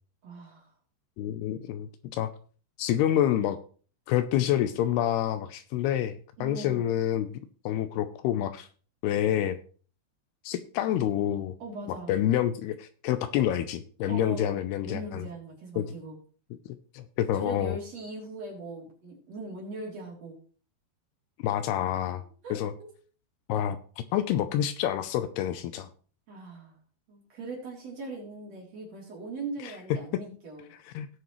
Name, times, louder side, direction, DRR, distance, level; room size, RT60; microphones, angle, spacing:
voice 1, 0.2-0.7 6.4-6.9 11.6-12.1 14.1-16.2 17.3-20.4 22.4-22.9 26.3-26.8 27.1-30.7, right 2 dB, 40° right, -2 dB, 3.8 m, -40 dB
voice 2, 1.2-2.3 2.8-3.6 4.1-7.3 7.7-8.7 9.0-9.6 10.4-11.5 12.1-15.3 15.8-15.9 16.9-17.8 21.4-22.2 22.5-22.7 23.5-25.9 29.6-30.0 30.9-31.1, left 11 dB, 80° left, 11 dB, 2.5 m, -28 dB
18.0 x 6.6 x 3.1 m, 0.41 s
omnidirectional pair, 4.8 m